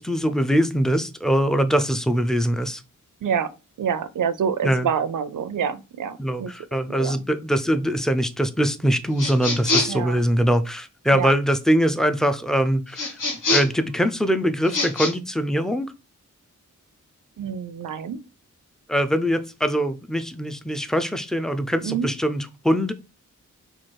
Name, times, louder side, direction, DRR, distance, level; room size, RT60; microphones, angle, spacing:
voice 1, 0.0-2.8 4.6-4.9 6.2-13.1 13.5-15.9 18.9-22.9, equal, ahead, 0.4 m, -22 dB
voice 2, 3.2-3.5 3.8-6.5 6.9-7.2 9.9-10.2 11.1-11.3 17.4-18.2 21.8-22.1, right 7 dB, 75° right, 0.5 m, -27 dB
sound 1, 9.2-10.1 12.9-13.8 14.6-15.1, left 2 dB, 75° left, 1.1 m, -24 dB
4.3 x 2.4 x 4.5 m
wide cardioid pair, 95°, 32 cm